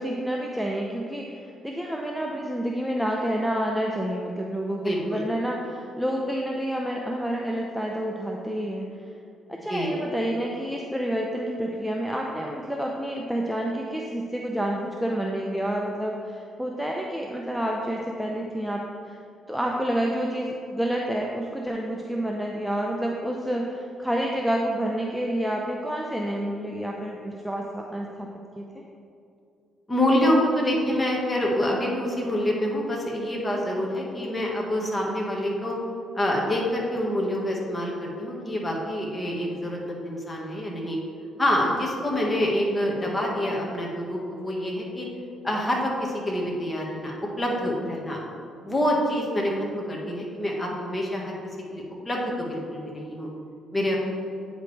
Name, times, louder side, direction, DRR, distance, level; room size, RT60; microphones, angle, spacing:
voice 1, 0.0-8.9 9.5-19.2 19.5-28.3 28.6-28.8, equal, ahead, -1 dB, 0.6 m, -29 dB
voice 2, 4.8-5.2 9.7-9.9 29.9-35.7 36.1-41.0 41.4-45.1 45.4-48.2 48.6-51.4 51.7-53.3 53.7-54.0, left 1 dB, 20° left, -2 dB, 1.6 m, -26 dB
8.8 x 5.1 x 3.3 m, 2.5 s
cardioid pair, 90°, 0 cm